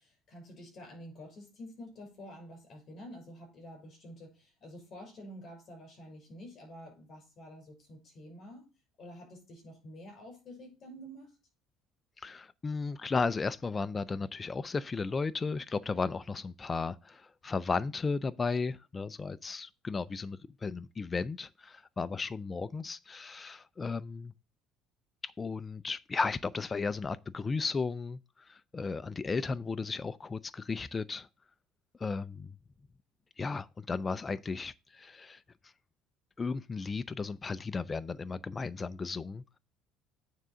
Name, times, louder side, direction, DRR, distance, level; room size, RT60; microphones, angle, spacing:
voice 1, 0.0-8.7 9.0-11.4, equal, 35° left, 5.4 m, -49 dB
voice 2, 12.2-24.3 25.2-31.3 32.0-32.5 33.4-35.4 36.4-39.6, left 4 dB, 20° left, 0.3 m, -35 dB
9.2 x 3.7 x 6.1 m
cardioid pair, 150°, 0 cm